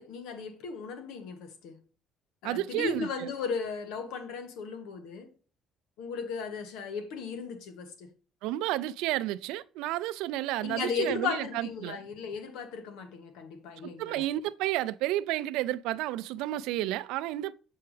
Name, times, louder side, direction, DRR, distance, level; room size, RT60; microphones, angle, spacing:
voice 1, 0.0-1.8 2.4-5.3 6.0-8.1 10.6-14.2, left 5 dB, 85° left, 1.4 m, -36 dB
voice 2, 2.4-3.3 8.4-12.0 14.0-17.6, right 15 dB, 85° right, 0.4 m, -31 dB
7.7 x 4.6 x 3.3 m
cardioid pair, 105°, 0 cm